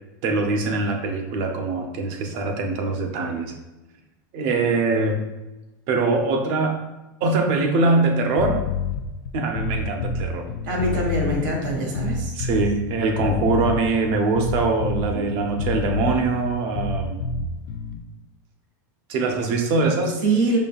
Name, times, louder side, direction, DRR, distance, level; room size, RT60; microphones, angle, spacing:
voice 1, 0.2-3.5 4.3-5.2 5.9-6.8 7.2-8.6 9.3-10.5 12.3-17.2 19.1-20.2, right 3 dB, 50° right, 3 dB, 0.7 m, -23 dB
sound 1, 8.4-18.0, left 5 dB, 80° left, 0.4 m, -28 dB
voice 2, 10.6-12.3 15.1-15.4 20.2-20.6, right 2 dB, 80° right, 0 dB, 1.3 m, -24 dB
5.2 x 2.7 x 2.3 m, 1.0 s
supercardioid pair, 150°, 11 cm